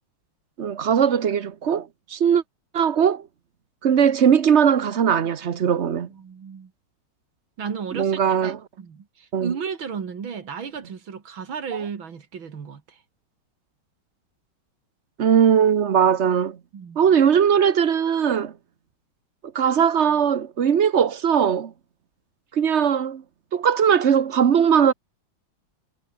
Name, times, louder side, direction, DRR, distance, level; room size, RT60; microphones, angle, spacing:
voice 1, 0.6-2.4 2.7-3.2 3.8-6.1 7.9-8.6 9.3-9.5 15.2-16.6 17.0-18.5 19.5-21.7 22.5-23.2 23.5-24.9, right 8 dB, 50° right, 0.9 m, -19 dB
voice 2, 6.1-6.7 7.6-8.4 8.8-13.0 16.7-17.0, right 6 dB, 65° right, 3.0 m, -34 dB
omnidirectional pair, 2.3 m